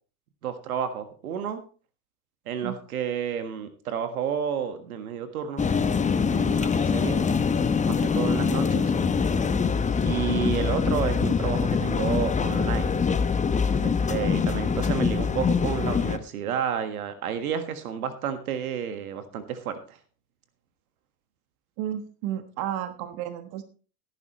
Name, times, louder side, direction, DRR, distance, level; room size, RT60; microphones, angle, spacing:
voice 1, 0.4-1.6 2.4-5.6 6.3-7.2 7.9-8.9 10.0-13.0 13.8-20.0, right 8 dB, 80° right, 9 dB, 1.6 m, -31 dB
sound 1, 5.6-16.2, left 5 dB, 15° left, 0.8 m, -24 dB
voice 2, 21.8-23.6, right 11 dB, 55° right, 10 dB, 1.3 m, -32 dB
16.5 x 9.9 x 3.1 m, 0.38 s
hypercardioid pair, 75°, 43 cm